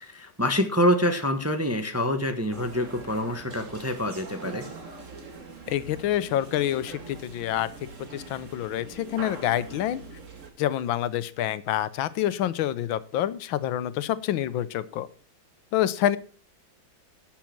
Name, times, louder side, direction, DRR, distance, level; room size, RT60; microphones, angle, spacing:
voice 1, 0.0-4.6, equal, 10° right, 6 dB, 0.8 m, -26 dB
sound 1, 2.5-10.5, right 4 dB, 40° right, 2.0 m, -43 dB
voice 2, 5.7-7.7 8.1-10.0 10.6-15.1 15.7-16.2, left 12 dB, 90° left, 15 dB, 1.5 m, -27 dB
12.0 x 7.3 x 5.9 m, 0.42 s
omnidirectional pair, 2.1 m